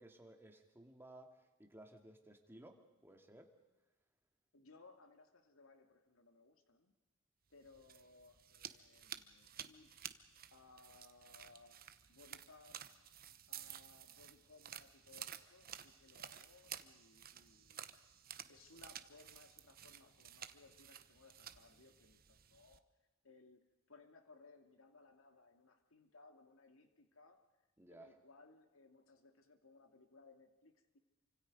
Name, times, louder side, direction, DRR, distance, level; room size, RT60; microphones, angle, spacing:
voice 1, 0.0-3.5 27.8-28.1, right 1 dB, 10° right, 3 dB, 2.3 m, -58 dB
voice 2, 4.5-6.9 7.5-12.9 13.5-18.0 18.5-22.9 23.2-27.4 27.9-31.0, left 3 dB, 85° left, 6 dB, 2.2 m, -64 dB
sound 1, 7.6-22.8, right 10 dB, 45° right, 1.0 m, -53 dB
28.5 x 25.5 x 5.3 m, 1.2 s
head